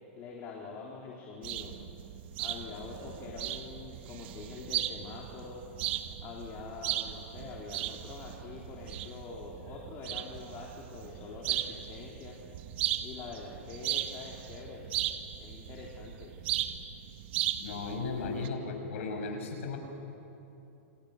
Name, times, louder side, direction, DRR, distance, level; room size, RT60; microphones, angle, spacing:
voice 1, 0.2-1.7 2.4-5.7 6.2-14.9 15.4-16.3, left 4 dB, 30° left, -2 dB, 3.8 m, -45 dB
sound 1, 1.4-18.5, right 12 dB, 50° right, 1.6 m, -37 dB
voice 2, 17.6-19.8, left 4 dB, 70° left, 4 dB, 6.4 m, -36 dB
28.5 x 27.5 x 6.8 m, 2.9 s
hypercardioid pair, 150°, 7 cm